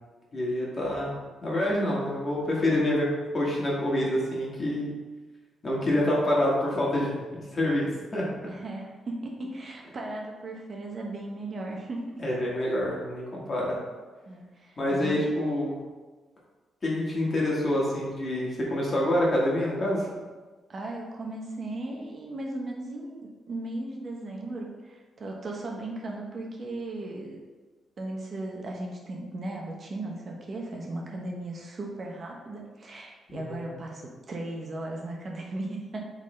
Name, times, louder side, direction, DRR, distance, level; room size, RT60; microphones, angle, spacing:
voice 1, 0.3-1.2 1.4-4.9 5.6-8.3 12.2-13.8 14.8-15.7 16.8-20.1 33.3-33.7, left 1 dB, 30° left, -4 dB, 1.7 m, -27 dB
voice 2, 8.5-12.2 14.3-15.2 20.7-23.2 23.5-27.4 28.0-36.1, right 2 dB, 40° right, 0 dB, 0.8 m, -36 dB
8.1 x 3.8 x 3.3 m, 1.3 s
cardioid pair, 135°, 0 cm